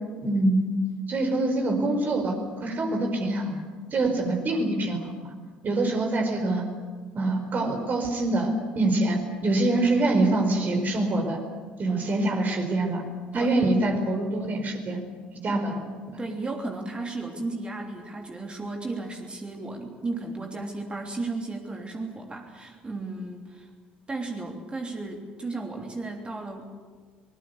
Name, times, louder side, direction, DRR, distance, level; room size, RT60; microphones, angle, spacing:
voice 1, 0.2-0.8 1.1-3.6 3.9-5.1 5.6-6.6 7.1-11.4 11.8-13.0 13.3-15.0 15.4-15.7 16.1-16.2, right 2 dB, 40° right, 4 dB, 4.7 m, -25 dB
voice 2, 13.3-13.6 15.5-15.7 16.2-23.7 24.1-26.7, right 3 dB, 20° right, 2 dB, 3.2 m, -34 dB
24.0 x 21.0 x 8.2 m, 1.5 s
figure-of-eight pair, 55°, 5 cm